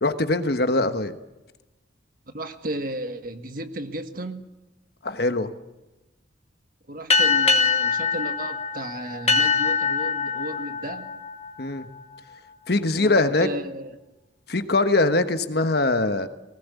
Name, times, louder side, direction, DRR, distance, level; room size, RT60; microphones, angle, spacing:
voice 1, 0.0-1.1 5.0-5.5 11.6-11.8 12.7-13.5 14.5-16.3, left 2 dB, 60° left, 9 dB, 1.3 m, -22 dB
voice 2, 2.3-4.4 6.9-11.1 12.9-14.0, right 1 dB, 50° right, 7 dB, 1.6 m, -34 dB
sound 1, 7.1-12.2, left 5 dB, 35° left, 1.8 m, -23 dB
19.5 x 19.0 x 8.4 m, 1.0 s
head